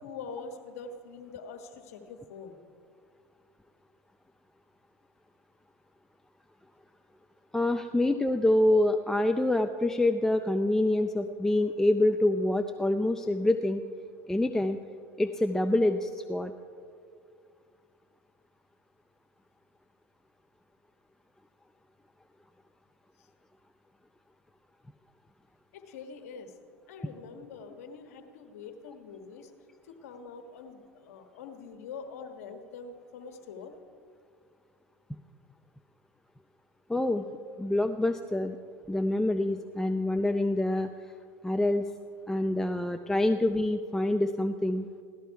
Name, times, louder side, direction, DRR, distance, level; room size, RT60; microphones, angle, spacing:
voice 1, 0.0-2.6 23.2-23.3 25.7-26.6 26.9-29.5 29.8-33.7, left 5 dB, 85° left, 6 dB, 1.4 m, -44 dB
voice 2, 7.5-13.8 14.3-14.8 15.2-16.5 36.9-37.2 37.6-38.6 38.9-40.9 41.4-41.9 42.3-44.9, left 1 dB, 5° left, 7 dB, 0.5 m, -26 dB
17.0 x 12.5 x 4.7 m, 2.2 s
supercardioid pair, 110°, 8 cm